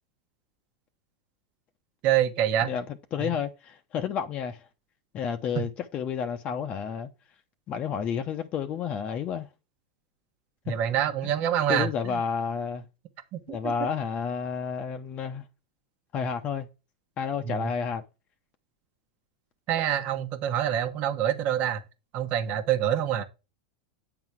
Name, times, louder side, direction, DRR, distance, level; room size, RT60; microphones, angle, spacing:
voice 1, 2.0-2.7 3.2-3.3 10.6-12.2 13.3-13.7 17.4-17.7 19.7-21.8 22.1-23.2, right 10 dB, 50° right, 1.2 m, -26 dB
voice 2, 3.1-4.7 5.1-7.1 7.7-9.5 10.7-10.8 11.7-12.9 13.5-15.4 16.1-16.7 17.2-18.0, left 7 dB, 40° left, 0.7 m, -30 dB
8.7 x 4.0 x 4.5 m
hypercardioid pair, 105°, 3 cm